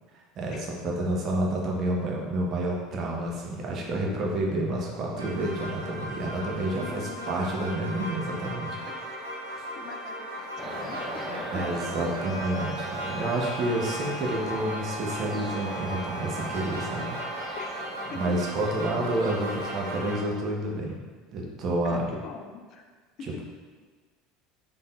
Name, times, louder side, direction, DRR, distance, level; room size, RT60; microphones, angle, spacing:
voice 1, 0.1-8.8 9.5-9.6 11.5-17.6 18.1-21.0 21.3-22.1, right 1 dB, 40° right, -2 dB, 0.7 m, -29 dB
sound 1, 5.2-20.2, right 1 dB, 75° right, 0.7 m, -37 dB
voice 2, 6.8-7.5 7.8-7.9 9.0-9.1 9.8-11.6 17.6-18.5 21.8-22.9 23.2-23.4, left 4 dB, 45° left, 4 dB, 0.4 m, -43 dB
sound 2, 10.6-20.4, right 1 dB, 10° left, 0.6 m, -40 dB
Bowed string instrument, 12.1-17.8, right 3 dB, 85° left, 0.7 m, -41 dB
3.6 x 3.5 x 2.4 m, 1.5 s
figure-of-eight pair, 70°, 0 cm